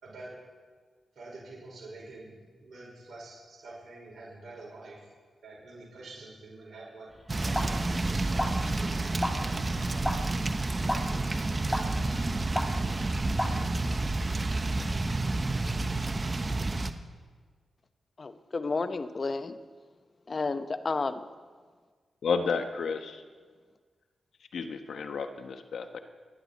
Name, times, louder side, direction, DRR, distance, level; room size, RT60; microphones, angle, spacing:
voice 1, 0.0-0.4 1.2-5.1 5.4-9.0 9.6-10.0 10.7-11.9, right 2 dB, 65° right, -4 dB, 5.0 m, -47 dB
sound 1, 7.1-14.1, equal, 10° left, 2.0 m, -36 dB
sound 2, 7.3-16.9, right 2 dB, 35° right, 1.1 m, -30 dB
voice 2, 18.2-19.6 20.3-21.2, left 3 dB, 45° left, 11 dB, 0.9 m, -31 dB
voice 3, 22.2-23.2 24.5-26.0, left 5 dB, 75° left, 8 dB, 1.1 m, -31 dB
30.0 x 10.0 x 4.2 m, 1.5 s
supercardioid pair, 45°, 0 cm